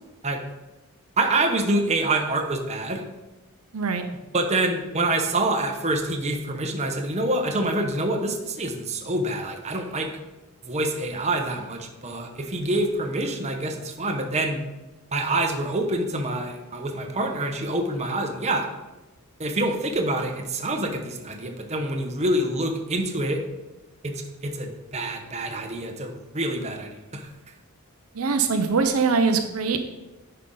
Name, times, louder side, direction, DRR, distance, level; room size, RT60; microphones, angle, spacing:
voice 1, 1.2-3.0 4.3-10.1 10.6-14.6 15.1-18.7 19.4-23.4 24.0-27.3, right 2 dB, 30° right, 3 dB, 0.9 m, -26 dB
voice 2, 3.7-4.0 28.1-30.0, right 4 dB, 75° right, 7 dB, 0.7 m, -23 dB
10.0 x 5.6 x 3.9 m, 1.1 s
head